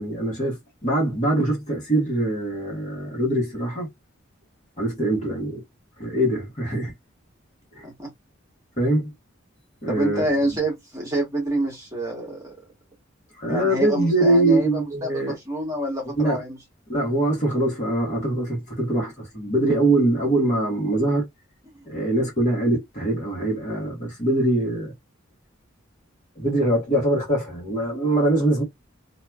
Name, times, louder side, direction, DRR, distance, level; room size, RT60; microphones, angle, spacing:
voice 1, 0.0-3.9 4.8-5.6 6.0-6.9 7.7-7.8 8.8-9.1 9.8-10.2 13.4-15.4 16.1-16.4 16.9-21.3 21.8-24.9 26.4-28.6, right 1 dB, 35° left, 1.5 m, -23 dB
voice 2, 9.9-12.5 13.5-16.6, right 1 dB, 15° right, 1.4 m, -27 dB
3.0 x 2.7 x 2.3 m
head